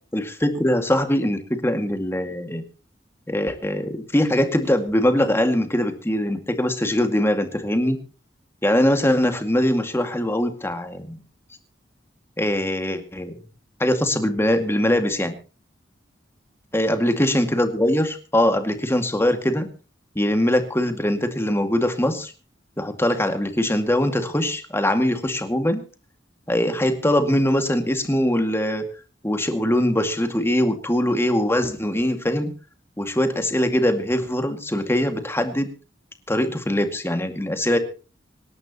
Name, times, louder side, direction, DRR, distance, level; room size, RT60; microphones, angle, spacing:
voice 1, 0.1-2.6 3.3-8.0 8.6-11.2 12.4-13.3 13.8-15.3 16.7-19.7 20.2-22.3 22.8-25.8 26.5-28.8 29.2-32.5 33.0-35.7 36.3-37.8, left 1 dB, 15° left, 6 dB, 2.2 m, -22 dB
26.0 x 11.0 x 3.0 m, 0.34 s
head